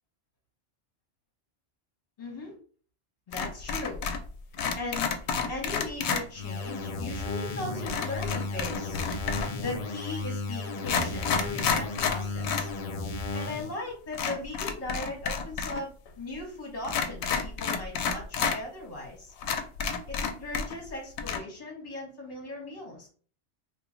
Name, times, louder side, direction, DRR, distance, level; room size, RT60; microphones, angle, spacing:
voice 1, 2.2-2.5 3.3-4.0 4.7-5.2 5.5-9.0 9.5-12.7 13.3-15.9 16.2-19.3 20.1-23.1, left 2 dB, 35° left, 0 dB, 1.2 m, -38 dB
sound 1, 3.3-4.3 4.5-6.2 7.9-9.6 10.3-10.4 10.8-12.7 13.0-13.1 14.1-16.1 16.8-18.6 19.0-19.1 19.4-20.9 21.2-21.4, left 6 dB, 75° left, 0.8 m, -30 dB
sound 2, 6.4-13.8, left 3 dB, 60° left, 0.4 m, -34 dB
2.8 x 2.4 x 3.7 m, 0.42 s
omnidirectional pair, 1.2 m